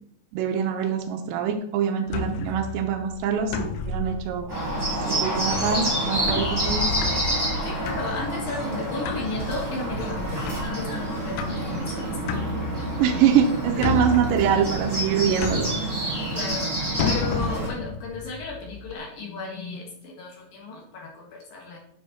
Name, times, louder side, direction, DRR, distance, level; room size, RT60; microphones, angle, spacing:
voice 1, 0.3-4.5 5.1-6.9 13.0-15.7, right 8 dB, 80° right, 2 dB, 2.8 m, -24 dB
sound 1, 2.1-19.0, left 3 dB, 80° left, 3.2 m, -33 dB
Bird, 4.5-17.7, right 1 dB, 10° right, 1.6 m, -28 dB
voice 2, 7.6-12.2 16.3-21.8, left 3 dB, 60° left, -1 dB, 2.8 m, -34 dB
9.6 x 6.3 x 4.3 m, 0.66 s
omnidirectional pair, 5.5 m